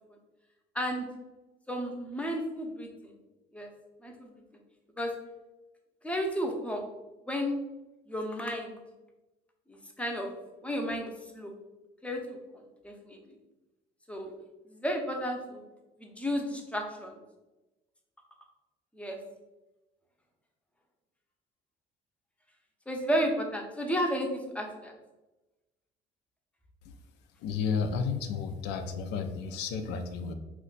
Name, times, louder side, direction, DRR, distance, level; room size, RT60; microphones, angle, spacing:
voice 1, 0.7-1.1 1.7-3.2 3.5-3.7 4.0-4.3 5.0-5.1 6.0-6.8 7.3-7.5 8.1-8.8 9.7-10.3 10.6-11.5 12.0-13.4 14.1-14.3 14.7-15.6 16.0-17.2 18.9-19.2 22.9-24.9, equal, 5° left, 1 dB, 0.5 m, -33 dB
voice 2, 27.4-30.3, left 5 dB, 90° left, 7 dB, 0.4 m, -32 dB
2.5 x 2.1 x 3.8 m, 1.1 s
cardioid pair, 110°, 17 cm